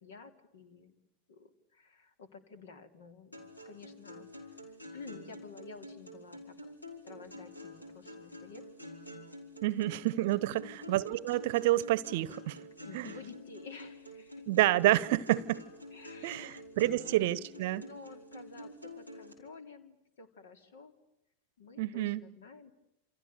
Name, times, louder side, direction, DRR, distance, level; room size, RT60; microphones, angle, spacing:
voice 1, 0.0-1.0 1.3-6.7 7.0-8.6 10.5-10.8 12.5-14.4 15.9-17.4 17.8-20.9 21.6-22.7, left 4 dB, 60° left, 3.2 m, -52 dB
sound 1, 3.3-19.3, left 1 dB, 85° left, 5.2 m, -48 dB
voice 2, 9.6-12.6 12.9-13.1 14.5-15.6 16.2-17.8 21.8-22.2, right 16 dB, 50° right, 0.9 m, -29 dB
29.0 x 28.5 x 6.9 m
figure-of-eight pair, 90°, 0 cm